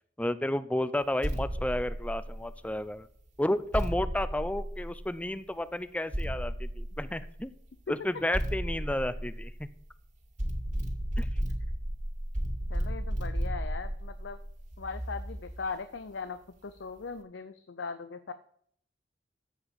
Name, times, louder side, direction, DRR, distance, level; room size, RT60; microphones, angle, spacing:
voice 1, 0.2-3.1 3.4-7.5 7.9-9.7 11.2-11.3, left 1 dB, 5° left, 14 dB, 0.5 m, -32 dB
sound 1, 1.2-2.7 3.7-5.3 6.1-7.5 8.3-9.9 10.4-15.7, equal, 45° right, 2.0 m, -34 dB
voice 2, 12.7-14.4 14.8-18.3, left 4 dB, 75° left, 10 dB, 0.7 m, -39 dB
14.0 x 5.0 x 8.0 m, 0.65 s
head